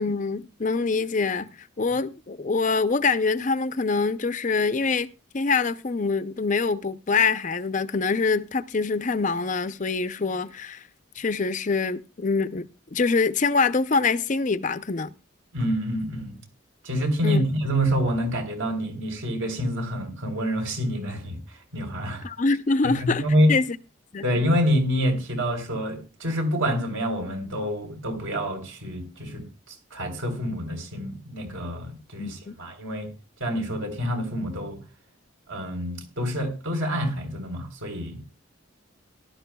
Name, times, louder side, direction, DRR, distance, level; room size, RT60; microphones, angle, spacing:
voice 1, 0.0-5.1 5.3-10.8 11.2-15.1 17.2-17.4 22.2-23.2 23.5-23.8 24.1-24.3 32.2-32.5, left 4 dB, 35° left, 0.6 m, -25 dB
voice 2, 15.5-16.4 16.8-21.4 21.7-22.3 22.8-23.5 24.2-33.1 33.4-34.8 35.5-38.2, equal, 70° right, 3.8 m, -27 dB
18.0 x 12.0 x 2.3 m
head